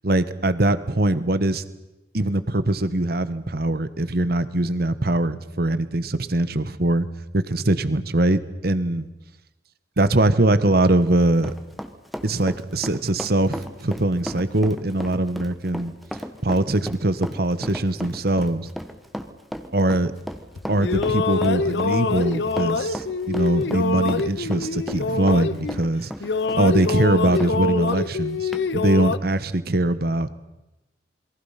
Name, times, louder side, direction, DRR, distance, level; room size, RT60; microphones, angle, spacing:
voice 1, 0.0-1.6 2.1-7.1 7.3-9.1 10.0-11.5 12.2-15.9 16.4-18.7 19.7-20.1 20.7-26.1 26.5-30.3, right 1 dB, 55° right, 13 dB, 1.2 m, -22 dB
Run, 10.9-27.5 27.9-28.0 28.5-28.7, equal, ahead, 1.4 m, -35 dB
sound 1, 20.6-25.9 26.2-29.2, left 4 dB, 70° left, 0.7 m, -25 dB
27.5 x 22.5 x 5.8 m, 0.99 s
head